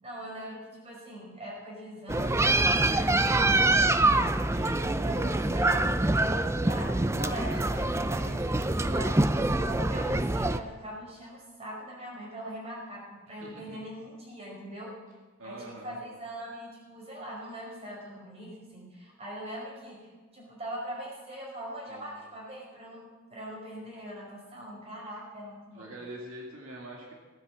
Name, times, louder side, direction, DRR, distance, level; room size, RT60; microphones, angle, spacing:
voice 1, 0.0-4.3 4.8-5.9 6.7-14.9 15.4-25.9, right 1 dB, 30° right, -3 dB, 5.1 m, -41 dB
sound 1, 2.1-10.6, right 2 dB, 15° right, 0.5 m, -25 dB
voice 2, 4.5-5.8 13.3-13.8 15.4-16.0 21.9-22.1 25.8-27.1, right 1 dB, 75° right, -1 dB, 2.2 m, -45 dB
17.5 x 9.3 x 7.5 m, 1.4 s
head